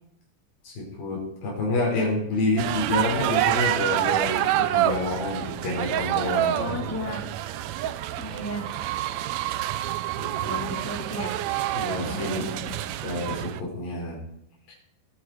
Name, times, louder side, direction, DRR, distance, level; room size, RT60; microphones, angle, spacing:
voice 1, 0.6-6.9 10.2-10.6 11.7-12.6 13.0-14.2 14.7-14.8, left 2 dB, 85° left, -2 dB, 7.0 m, -28 dB
sound 1, 2.6-13.6, right 13 dB, 85° right, 1.5 m, -27 dB
voice 2, 6.5-7.2 8.2-8.7 10.5-11.3 12.0-12.3 12.7-12.8, left 1 dB, 5° left, 0 dB, 2.6 m, -34 dB
21.5 x 10.0 x 4.6 m, 0.81 s
omnidirectional pair, 3.9 m